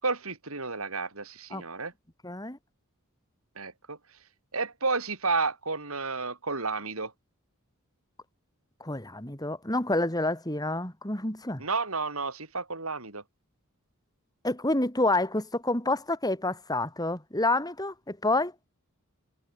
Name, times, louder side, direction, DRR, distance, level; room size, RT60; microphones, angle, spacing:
voice 1, 0.0-1.9 3.6-4.0 4.5-7.1 11.6-13.2, right 4 dB, 75° right, 4.9 m, -31 dB
voice 2, 2.2-2.6 8.8-11.6 14.4-18.5, left 2 dB, 15° left, 4.6 m, -28 dB
head